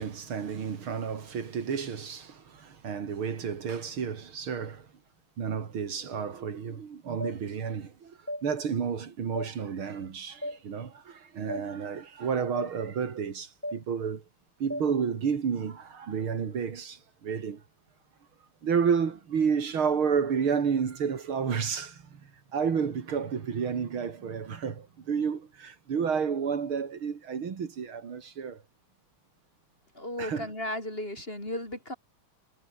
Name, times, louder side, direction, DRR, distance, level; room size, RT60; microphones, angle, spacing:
voice 1, 0.0-4.9 5.4-14.2 14.6-17.6 18.6-28.6 30.2-30.5, right 6 dB, 75° right, 3.1 m, -31 dB
sound 1, 7.2-7.4 8.3-8.4 9.3-9.5 10.4-10.6 11.5-11.6 12.6-12.7 13.6-13.8 14.7-14.9, equal, 5° left, 5.4 m, -34 dB
voice 2, 29.9-31.9, left 1 dB, 25° left, 7.9 m, -35 dB
omnidirectional pair, 2.3 m